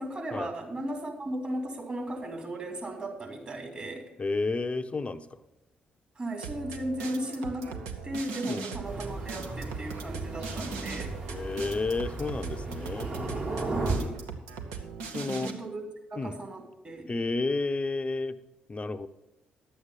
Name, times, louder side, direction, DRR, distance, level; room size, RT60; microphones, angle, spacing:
voice 1, 0.0-4.0 6.1-11.2 13.7-14.2 15.2-15.8 16.1-17.1, right 1 dB, 30° right, 1 dB, 3.4 m, -36 dB
voice 2, 4.2-5.4 8.5-8.7 11.3-13.1 15.0-15.5 16.2-16.4 17.1-18.4 18.7-19.1, left 3 dB, 30° left, 11 dB, 0.7 m, -31 dB
sound 1, 6.4-15.5, right 5 dB, 75° right, 0.9 m, -40 dB
Thunder, 8.8-13.9, right 3 dB, 50° right, 3.3 m, -35 dB
11.0 x 8.0 x 5.5 m, 0.98 s
figure-of-eight pair, 40°, 4 cm